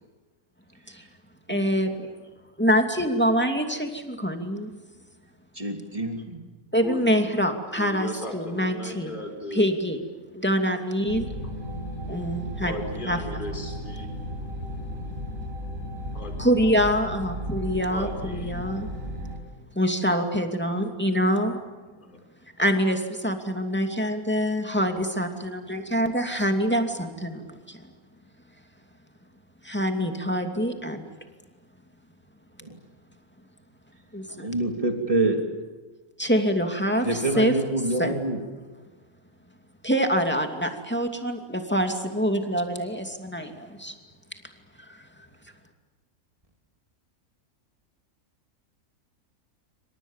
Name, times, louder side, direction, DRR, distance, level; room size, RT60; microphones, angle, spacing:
voice 1, 1.5-2.1 2.6-4.7 6.7-9.1 9.5-10.0 10.3-11.3 12.1-12.7 13.1-13.2 13.5-13.6 16.4-18.9 19.7-21.6 22.6-27.8 29.6-31.1 34.1-34.5 36.2-37.5 38.0-38.1 39.8-43.9 44.9-45.0, equal, 5° left, 4 dB, 2.6 m, -25 dB
voice 2, 5.5-6.4 32.6-32.8 34.4-35.4 37.0-38.4, right 2 dB, 20° right, 4 dB, 3.2 m, -26 dB
voice 3, 6.8-7.3 7.8-9.7 12.6-14.1 16.1-16.4 17.9-18.5 22.0-22.2, left 1 dB, 30° left, 4 dB, 4.8 m, -36 dB
sound 1, 11.1-19.4, equal, 60° right, 5.9 m, -35 dB
28.0 x 26.0 x 7.4 m, 1.3 s
omnidirectional pair, 1.6 m